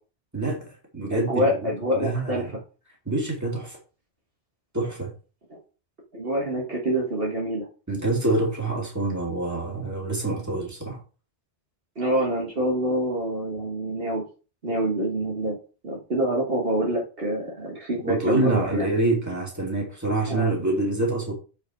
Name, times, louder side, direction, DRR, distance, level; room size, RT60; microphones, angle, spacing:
voice 1, 0.3-0.7 0.9-1.7 1.9-2.6 3.1-3.8 4.7-5.1 7.9-11.0 18.0-21.3, right 2 dB, 15° right, -2 dB, 2.7 m, -26 dB
voice 2, 1.1-2.5 6.1-7.7 12.0-14.2 14.6-15.6 15.8-18.9 20.3-20.5, right 1 dB, 55° right, -1 dB, 1.9 m, -26 dB
7.8 x 5.0 x 4.5 m, 0.35 s
omnidirectional pair, 1.1 m